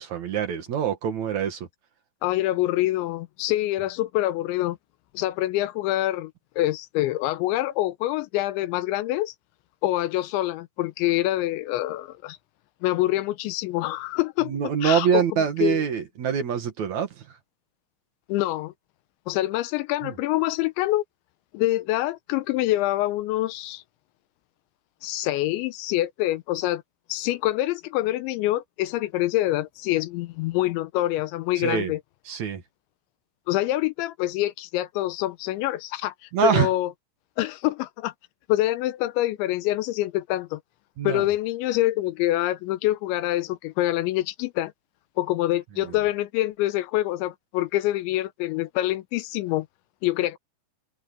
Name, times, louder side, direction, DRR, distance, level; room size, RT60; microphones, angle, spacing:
voice 1, 0.0-1.7 14.5-17.2 20.0-20.1 31.6-31.9 32.3-32.6 36.3-36.7 41.0-41.2 45.8-45.9, right 8 dB, 60° right, 2.0 m, -25 dB
voice 2, 2.2-4.8 5.1-6.3 6.6-9.3 9.8-12.4 12.8-14.5 14.8-15.2 15.6-15.8 18.3-18.7 19.3-21.0 21.5-23.8 25.0-26.8 27.1-32.0 33.5-36.1 36.4-36.9 37.4-38.1 38.5-40.6 41.0-44.7 45.2-49.7 50.0-50.4, left 16 dB, 80° left, 3.0 m, -25 dB
open air
omnidirectional pair, 5.4 m